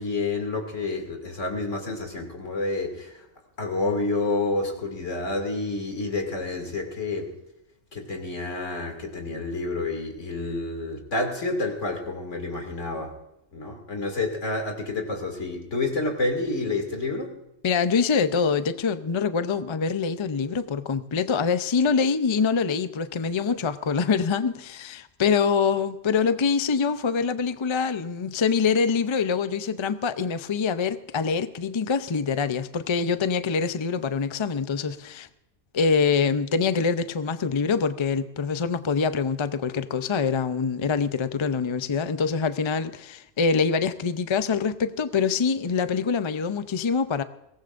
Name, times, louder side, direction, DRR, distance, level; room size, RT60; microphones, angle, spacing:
voice 1, 0.0-3.3 3.6-7.3 7.9-13.2 13.5-17.3, left 2 dB, 80° left, 2.9 m, -29 dB
voice 2, 17.6-35.3 35.7-47.2, left 5 dB, 35° left, 0.5 m, -25 dB
23.0 x 18.5 x 2.6 m
omnidirectional pair, 1.2 m